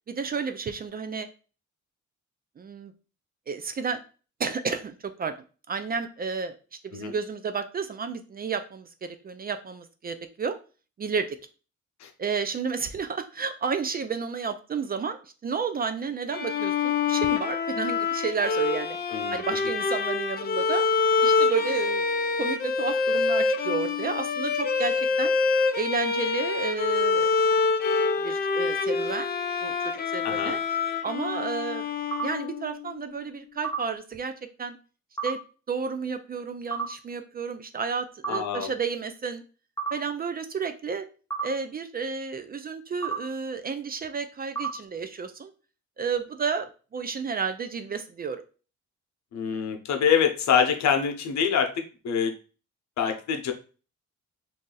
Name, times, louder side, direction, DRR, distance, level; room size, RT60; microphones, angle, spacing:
voice 1, 0.1-1.3 2.6-2.9 3.5-4.0 4.4-5.3 5.7-6.5 6.8-10.6 11.0-11.4 12.2-19.0 19.3-20.8 21.2-22.0 22.4-25.3 25.7-27.4 28.2-29.3 29.6-30.6 31.0-31.8 32.2-34.3 34.6-34.8 35.2-35.4 35.7-39.4 39.9-41.1 41.4-45.5 46.0-48.4, right 5 dB, 30° right, 9 dB, 0.4 m, -31 dB
Bowed string instrument, 16.3-32.8, left 4 dB, 30° left, 0.5 m, -26 dB
voice 2, 30.2-30.6 38.3-38.7 49.3-52.3 53.0-53.5, left 7 dB, 65° left, 5 dB, 0.8 m, -25 dB
sound 1, 32.1-32.3 33.6-33.8 35.2-35.3 36.7-36.9 38.2-38.4 39.8-39.9 41.3-41.5 43.0-43.2 44.6-44.7, right 6 dB, 10° left, 0.8 m, -29 dB
2.7 x 2.4 x 3.8 m, 0.36 s
cardioid pair, 90°, 30 cm